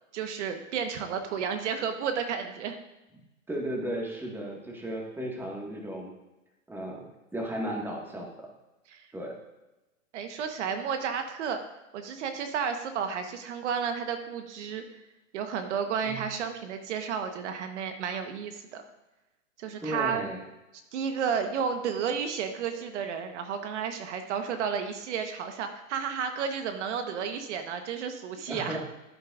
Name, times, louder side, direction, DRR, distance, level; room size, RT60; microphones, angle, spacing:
voice 1, 0.1-2.8 8.9-9.0 10.1-11.6 11.9-15.0 15.3-18.8 19.6-20.2 20.9-28.8, right 7 dB, 60° right, 6 dB, 1.3 m, -32 dB
voice 2, 3.5-6.1 6.7-7.0 7.3-8.5 9.1-9.3 16.0-16.2 19.8-20.4 28.5-28.9, right 1 dB, 5° right, 0 dB, 1.8 m, -35 dB
15.0 x 8.6 x 2.5 m, 1.0 s
hypercardioid pair, 135°, 39 cm